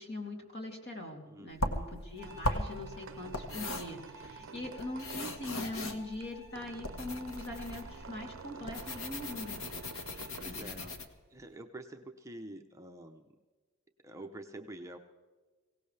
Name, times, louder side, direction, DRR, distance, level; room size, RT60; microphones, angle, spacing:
voice 1, 0.0-9.6 10.0-10.1 10.4-10.9, left 1 dB, 50° left, 1 dB, 3.0 m, -42 dB
voice 2, 1.3-2.1 4.4-4.7 10.4-13.3 14.0-15.0, right 1 dB, 15° right, 4 dB, 0.8 m, -48 dB
sound 1, 1.5-11.0, left 1 dB, 70° left, 1.5 m, -38 dB
Squeak, 1.9-11.5, right 5 dB, 65° right, 0.5 m, -50 dB
Bowed string instrument, 2.2-10.5, left 1 dB, 15° left, 2.6 m, -56 dB
24.0 x 17.5 x 3.4 m, 1.3 s
head